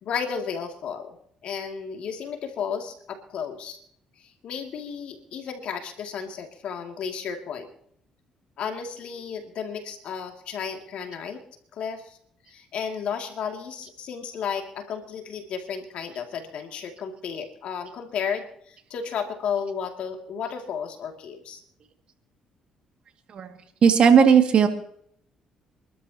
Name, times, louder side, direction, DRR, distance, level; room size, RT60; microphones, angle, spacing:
voice 1, 0.0-1.2 1.4-3.8 4.2-7.7 8.6-11.4 11.7-12.2 12.5-21.6, left 7 dB, 70° left, 3 dB, 2.5 m, -33 dB
voice 2, 23.8-24.7, right 7 dB, 55° right, 5 dB, 2.2 m, -16 dB
26.5 x 12.5 x 2.9 m, 0.68 s
supercardioid pair, 80°, 2 cm